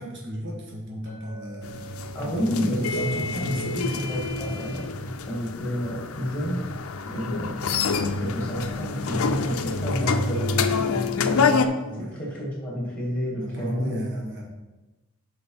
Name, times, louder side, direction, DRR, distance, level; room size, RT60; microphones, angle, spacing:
voice 1, 0.0-1.7 2.2-4.1 7.2-7.4 11.8-12.1 13.4-14.5, equal, 55° right, -2 dB, 1.5 m, -35 dB
Chink clink, 1.1-5.2, right 3 dB, 30° right, 2.7 m, -49 dB
sound 1, 1.6-11.7, left 4 dB, 75° left, 0.5 m, -27 dB
voice 2, 2.1-4.9 5.3-6.7 7.1-7.6 8.2-11.6 12.0-14.0, equal, 5° left, -4 dB, 2.1 m, -29 dB
5.9 x 5.0 x 5.6 m, 1.1 s
head